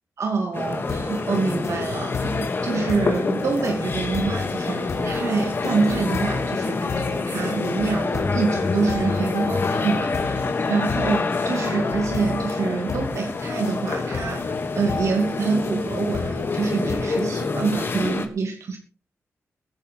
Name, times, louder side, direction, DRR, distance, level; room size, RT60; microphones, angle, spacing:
voice 1, 0.2-18.8, right 4 dB, 70° right, 3 dB, 2.6 m, -26 dB
sound 1, 0.5-18.3, left 3 dB, 45° left, 3.1 m, -27 dB
sound 2, 0.7-18.1, left 4 dB, 75° left, 3.8 m, -32 dB
21.0 x 10.0 x 4.0 m, 0.34 s
wide cardioid pair, 100°, 5 cm